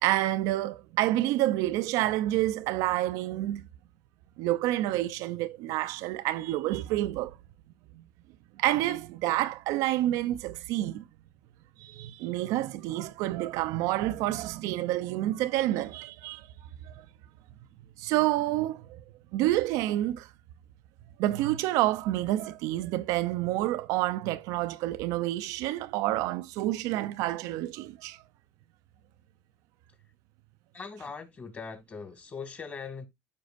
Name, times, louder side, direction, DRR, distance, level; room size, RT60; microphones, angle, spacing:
voice 1, 0.0-3.6 4.4-7.4 7.9-8.0 8.6-11.0 11.8-16.5 16.8-17.1 18.0-19.0 19.3-20.3 21.2-28.2, right 15 dB, 80° right, 0.5 m, -28 dB
voice 2, 30.7-33.1, left 5 dB, 30° left, 2.2 m, -40 dB
13.0 x 5.2 x 2.5 m
cardioid pair, 125°, 6 cm